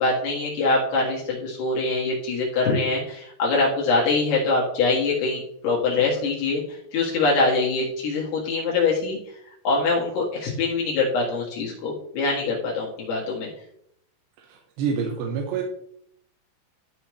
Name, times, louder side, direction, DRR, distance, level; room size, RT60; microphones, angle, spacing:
voice 1, 0.0-9.2 9.7-13.5, left 3 dB, 70° left, -4 dB, 3.8 m, -24 dB
voice 2, 14.8-15.6, right 6 dB, 85° right, 1 dB, 3.2 m, -26 dB
13.5 x 5.6 x 3.2 m, 0.72 s
omnidirectional pair, 5.0 m